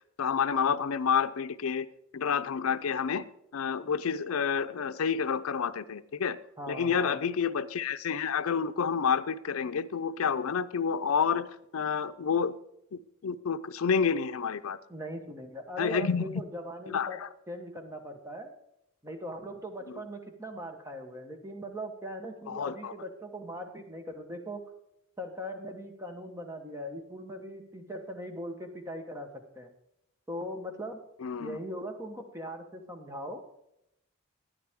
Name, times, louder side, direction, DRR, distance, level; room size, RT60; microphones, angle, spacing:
voice 1, 0.2-1.9 2.1-6.4 6.7-11.5 11.7-12.5 12.9-14.8 15.8-16.3 16.9-17.3 22.5-22.9 31.2-31.6, left 6 dB, 90° left, 13 dB, 0.5 m, -29 dB
voice 2, 6.6-7.2 14.9-18.5 19.0-24.6 25.2-29.7 30.3-31.0 31.4-33.4, equal, 15° right, 5 dB, 1.1 m, -40 dB
12.5 x 9.8 x 3.6 m, 0.80 s
head